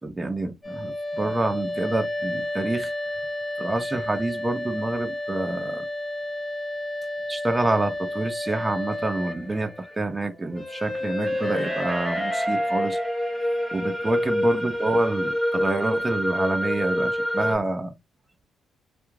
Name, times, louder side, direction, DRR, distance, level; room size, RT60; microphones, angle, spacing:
voice 1, 0.0-2.9 3.6-5.9 7.3-13.0 13.7-18.0, right 2 dB, 20° right, 0.6 m, -27 dB
sound 1, 0.6-17.5, left 1 dB, 5° left, 1.1 m, -29 dB
2.4 x 2.3 x 3.1 m
cardioid pair, 90°, 0 cm